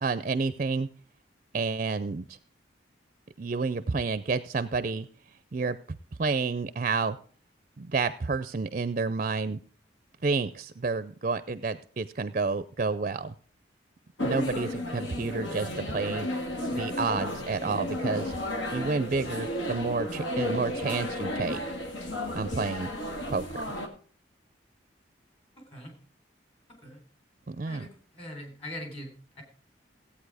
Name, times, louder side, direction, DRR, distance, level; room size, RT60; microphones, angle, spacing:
voice 1, 0.0-0.9 1.5-2.4 3.4-5.1 5.5-7.2 7.8-9.6 10.2-13.3 14.2-16.3 16.7-18.3 18.7-21.6 22.3-22.9 23.3-23.5 27.5-27.9, right 4 dB, 40° right, 13 dB, 0.5 m, -30 dB
sound 1, 14.2-23.9, left 1 dB, 80° left, 2.0 m, -33 dB
voice 2, 25.5-26.0 26.8-27.0 27.6-29.4, left 1 dB, 30° left, 4 dB, 3.8 m, -42 dB
16.5 x 8.6 x 4.8 m, 0.43 s
head